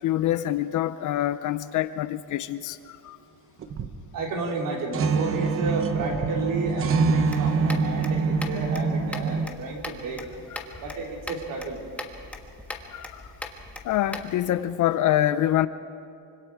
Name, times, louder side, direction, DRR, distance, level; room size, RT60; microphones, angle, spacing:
voice 1, 0.0-3.2 8.5-8.6 10.7-10.8 12.9-13.3 13.8-15.7, left 13 dB, 45° left, 0.6 m, -26 dB
sound 1, 3.6-4.0 4.5-4.6 4.9-9.5, right 4 dB, 30° right, 0.9 m, -25 dB
voice 2, 4.1-10.3 10.8-11.8, right 3 dB, 50° right, 3.6 m, -31 dB
sound 2, 7.2-14.3, left 2 dB, 5° left, 1.3 m, -40 dB
25.5 x 25.0 x 4.8 m
cardioid pair, 160°, 41 cm